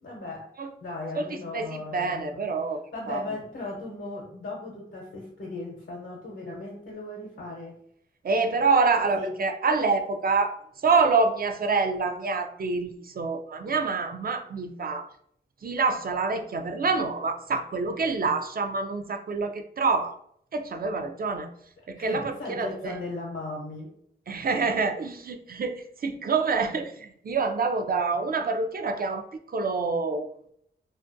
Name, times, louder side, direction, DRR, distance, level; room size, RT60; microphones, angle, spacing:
voice 1, 0.0-0.5 0.8-2.4 2.9-7.8 9.0-9.3 21.9-23.9 24.4-24.5, left 2 dB, 75° left, -2 dB, 0.7 m, -37 dB
voice 2, 1.1-3.2 8.2-15.1 15.6-20.1 20.5-21.5 21.9-23.0 24.3-30.3, right 4 dB, 45° right, 6 dB, 0.4 m, -27 dB
2.3 x 2.2 x 2.5 m, 0.66 s
cardioid pair, 45°, 21 cm